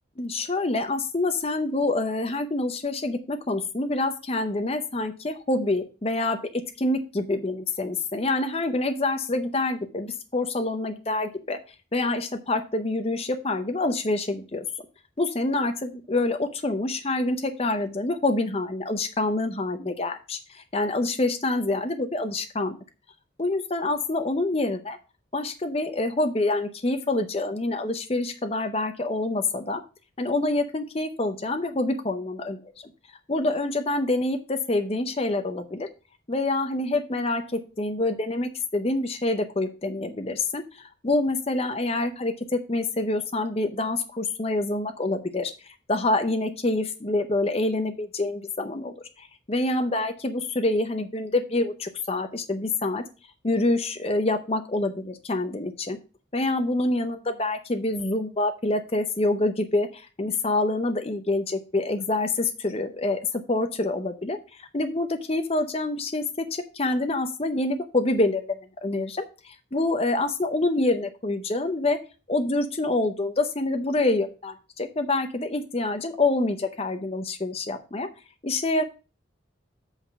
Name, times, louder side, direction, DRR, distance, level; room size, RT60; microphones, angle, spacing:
voice 1, 0.2-6.4 6.8-11.6 11.9-14.6 15.2-22.8 23.4-25.0 25.3-29.8 30.2-32.9 33.3-35.9 36.3-53.0 53.4-56.0 56.3-72.0 72.3-78.1 78.4-78.8, left 2 dB, 30° left, 7 dB, 0.6 m, -26 dB
8.0 x 3.8 x 5.8 m, 0.33 s
head